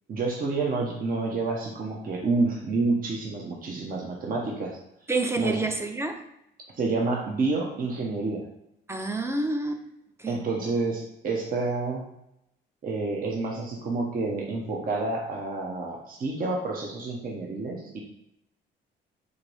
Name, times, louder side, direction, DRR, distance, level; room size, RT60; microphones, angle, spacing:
voice 1, 0.1-4.8 5.4-5.6 6.8-8.4 10.3-12.0 12.8-18.0, right 3 dB, 45° right, -1 dB, 0.7 m, -29 dB
voice 2, 5.1-6.2 8.9-9.8 10.2-10.4, right 2 dB, 15° right, 5 dB, 0.5 m, -28 dB
4.4 x 2.6 x 3.2 m, 0.79 s
cardioid pair, 90°, 20 cm